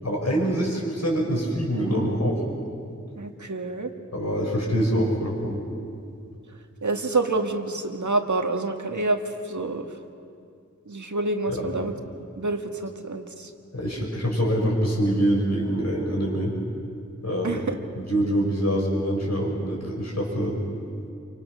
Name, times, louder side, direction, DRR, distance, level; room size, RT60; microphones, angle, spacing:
voice 1, 0.0-2.4 4.1-5.6 11.5-11.6 13.7-16.5 17.2-17.6 17.9-20.6, equal, 60° left, -2 dB, 5.9 m, -25 dB
voice 2, 3.2-3.9 6.8-9.9 10.9-13.5 17.4-17.8, right 2 dB, 70° right, 4 dB, 1.8 m, -28 dB
28.5 x 25.0 x 6.2 m, 2.4 s
wide cardioid pair, 50°, 30 cm